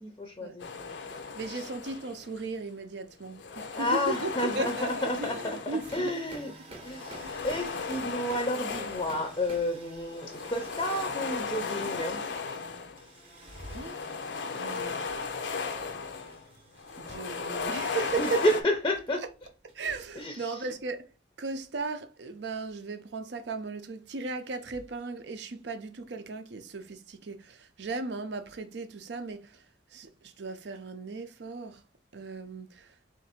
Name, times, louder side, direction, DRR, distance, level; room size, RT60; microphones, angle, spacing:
voice 1, 0.0-1.7 3.7-6.5 6.8-12.2 18.2-19.2 20.2-20.7, left 1 dB, 20° left, 0.5 m, -31 dB
sound 1, 0.6-2.5 3.2-6.2 6.8-9.6 10.0-13.1 13.4-16.4 16.8-18.6, left 4 dB, 70° left, 0.5 m, -36 dB
voice 2, 1.3-6.1 7.2-7.3 13.7-14.2 14.5-15.1 17.0-18.4 19.7-21.1 21.4-31.8 32.1-33.0, right 3 dB, 65° right, 0.5 m, -37 dB
sound 2, 5.8-20.9, right 1 dB, 30° right, 0.8 m, -50 dB
3.7 x 2.6 x 4.2 m
head